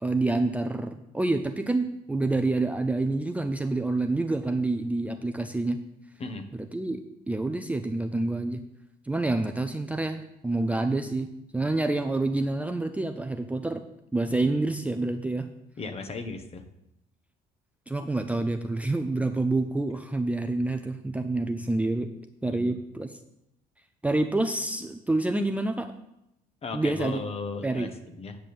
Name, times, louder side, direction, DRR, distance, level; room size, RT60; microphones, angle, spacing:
voice 1, 0.0-5.8 6.5-8.6 9.1-13.8 14.1-15.5 17.9-22.1 22.4-23.2 24.0-25.9 26.7-27.2 27.6-27.9, right 2 dB, 10° right, 6 dB, 0.6 m, -27 dB
voice 2, 15.8-16.6 22.5-22.7 26.6-28.4, left 4 dB, 35° left, 7 dB, 1.3 m, -36 dB
9.1 x 6.0 x 6.9 m, 0.83 s
cardioid pair, 110°, 17 cm